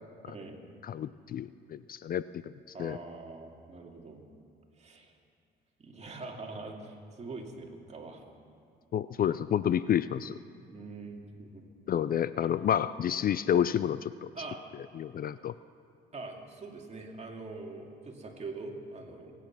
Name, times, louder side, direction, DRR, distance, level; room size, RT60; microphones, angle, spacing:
voice 1, 0.3-0.6 2.7-4.3 4.8-5.1 5.8-8.3 10.5-11.7 12.4-12.5 14.3-14.6 16.1-19.3, right 3 dB, 35° right, 0 dB, 2.4 m, -43 dB
voice 2, 0.8-2.2 2.8-3.0 8.9-10.3 11.9-14.3 15.0-15.5, left 9 dB, 50° left, 15 dB, 0.4 m, -29 dB
22.5 x 9.3 x 6.0 m, 2.3 s
cardioid pair, 90°, 20 cm